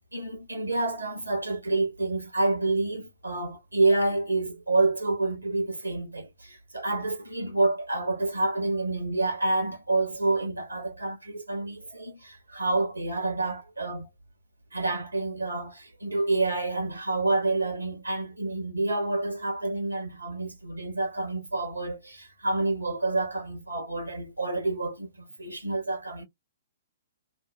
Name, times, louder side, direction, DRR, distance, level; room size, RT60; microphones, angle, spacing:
voice 1, 0.1-14.1 14.7-26.3, right 2 dB, 85° right, 1.1 m, -28 dB
2.7 x 2.0 x 2.3 m
figure-of-eight pair, 120°, 0 cm